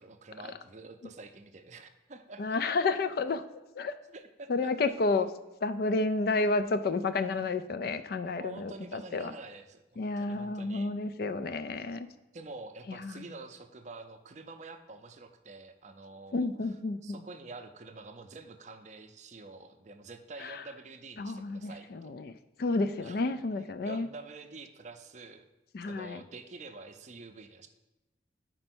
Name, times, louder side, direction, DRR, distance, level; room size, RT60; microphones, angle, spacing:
voice 1, 0.0-2.6 4.1-4.7 8.2-10.9 12.3-16.5 17.0-22.2 23.0-23.2 23.8-25.4 25.9-27.7, right 3 dB, 40° right, 8 dB, 0.5 m, -47 dB
voice 2, 2.4-3.4 3.8-3.9 4.5-5.3 5.6-9.3 10.0-12.1 12.9-13.2 16.3-17.2 20.4-20.6 21.2-24.1 25.7-26.2, left 3 dB, 55° left, 11 dB, 0.4 m, -31 dB
5.4 x 4.4 x 5.9 m, 1.0 s
head